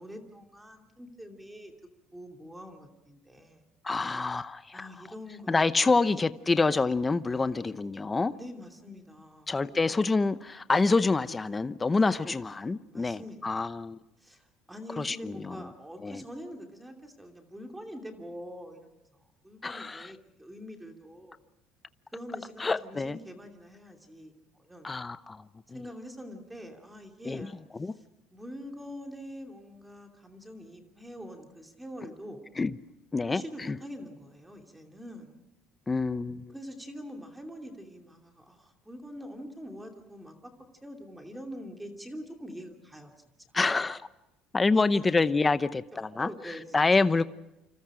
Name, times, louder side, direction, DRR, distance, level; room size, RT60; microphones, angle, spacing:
voice 1, 0.0-1.7 2.1-3.6 4.0-4.2 4.7-6.0 8.3-9.8 12.3-12.4 12.8-13.6 14.2-21.4 22.1-24.3 24.6-24.9 25.7-27.6 28.3-32.4 33.2-35.4 36.5-40.5 40.8-43.1 44.7-45.2 46.1-46.6 47.0-47.1, equal, 5° right, 2.8 m, -44 dB
voice 2, 3.8-4.9 5.5-8.3 9.5-14.0 15.0-15.7 16.0-16.2 19.6-20.1 22.6-23.2 24.8-25.4 25.7-25.8 27.2-27.9 32.6-32.8 33.1-33.8 35.9-36.5 43.5-44.0 44.5-47.2, left 3 dB, 15° left, 0.7 m, -27 dB
29.0 x 26.5 x 5.0 m
cardioid pair, 170°, 0 cm